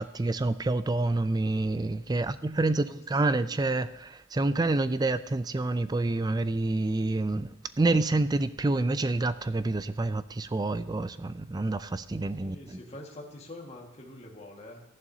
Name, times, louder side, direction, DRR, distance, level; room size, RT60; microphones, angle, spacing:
voice 1, 0.0-12.8, right 2 dB, 20° right, 13 dB, 0.4 m, -28 dB
voice 2, 12.4-14.8, left 1 dB, 30° left, -1 dB, 1.7 m, -45 dB
14.0 x 11.0 x 2.8 m, 0.96 s
head